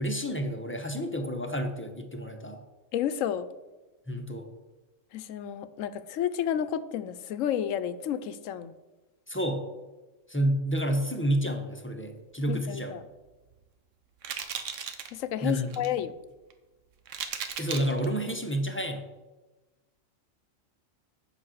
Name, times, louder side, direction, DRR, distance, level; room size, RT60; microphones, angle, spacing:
voice 1, 0.0-2.6 4.1-4.5 9.3-9.6 10.3-12.9 15.4-15.7 17.6-19.1, equal, 10° left, 4 dB, 0.8 m, -29 dB
voice 2, 2.9-3.5 5.1-8.7 12.5-13.0 15.1-16.2, left 10 dB, 80° left, 13 dB, 1.0 m, -31 dB
sound 1, 13.3-13.5 14.2-15.1 15.5-15.9 16.5-16.6 17.1-18.1, right 7 dB, 70° right, 1.2 m, -36 dB
8.8 x 5.9 x 6.3 m, 1.2 s
omnidirectional pair, 1.3 m